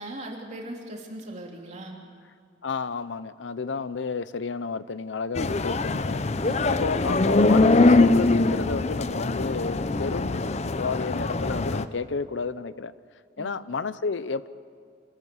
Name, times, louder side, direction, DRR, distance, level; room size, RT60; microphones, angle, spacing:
voice 1, 0.0-2.0 6.4-6.8 13.4-13.5, right 1 dB, 40° right, 0 dB, 3.3 m, -39 dB
voice 2, 2.6-6.2 6.7-10.5 10.8-12.9 13.4-14.5, left 4 dB, 85° left, 15 dB, 0.7 m, -31 dB
sound 1, 5.3-11.8, left 2 dB, 35° left, 0.6 m, -22 dB
26.0 x 14.0 x 9.6 m, 2.1 s
head